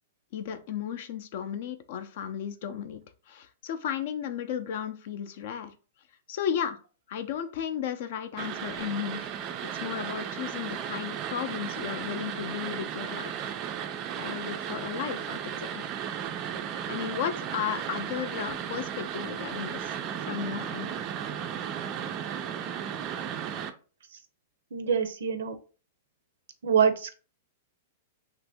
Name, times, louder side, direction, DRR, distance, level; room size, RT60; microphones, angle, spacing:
voice 1, 0.3-5.7 6.3-6.8 7.1-13.5 14.2-15.8 16.9-20.0 20.2-20.9, left 9 dB, 50° left, 10 dB, 0.5 m, -34 dB
sound 1, 8.4-23.7, right 9 dB, 30° right, 0.3 m, -35 dB
voice 2, 24.7-25.5 26.6-27.2, right 7 dB, 90° right, 9 dB, 0.5 m, -25 dB
2.9 x 2.6 x 3.4 m, 0.36 s
supercardioid pair, 160°, 0 cm